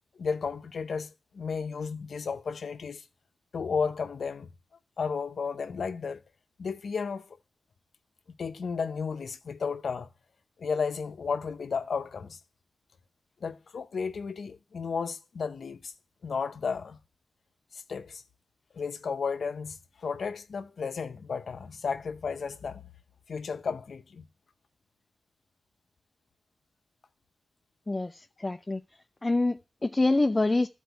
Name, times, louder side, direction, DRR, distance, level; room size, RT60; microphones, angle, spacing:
voice 1, 0.2-3.0 3.5-4.5 5.0-6.2 6.6-7.2 8.3-10.1 10.6-12.4 13.4-15.9 16.2-17.0 17.7-18.2 18.7-22.8 23.3-24.3, left 5 dB, 80° left, 0.7 m, -33 dB
voice 2, 27.9-28.8 29.2-30.7, left 2 dB, 25° left, 0.5 m, -26 dB
13.0 x 4.5 x 8.1 m
wide cardioid pair, 90°, 0 cm